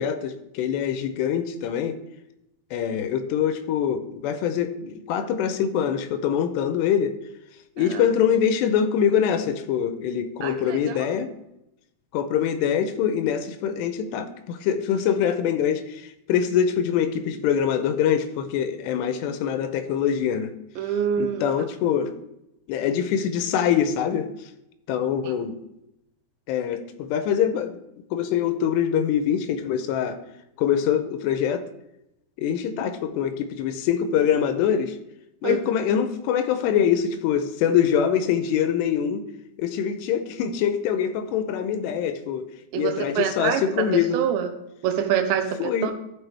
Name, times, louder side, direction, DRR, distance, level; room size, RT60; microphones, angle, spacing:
voice 1, 0.0-2.0 2.7-7.2 7.8-11.3 12.1-20.5 21.2-22.1 22.7-24.3 24.9-25.6 26.5-27.8 28.1-30.2 30.6-31.6 32.4-35.0 35.4-39.2 39.6-42.5 42.7-44.2 45.6-45.9, left 8 dB, 80° left, 10 dB, 2.7 m, -24 dB
voice 2, 10.4-11.1 20.8-21.4 25.3-25.4 35.4-35.6 42.7-44.5 44.8-45.9, right 8 dB, 85° right, 6 dB, 3.1 m, -26 dB
14.5 x 6.3 x 3.4 m, 0.87 s
omnidirectional pair, 5.0 m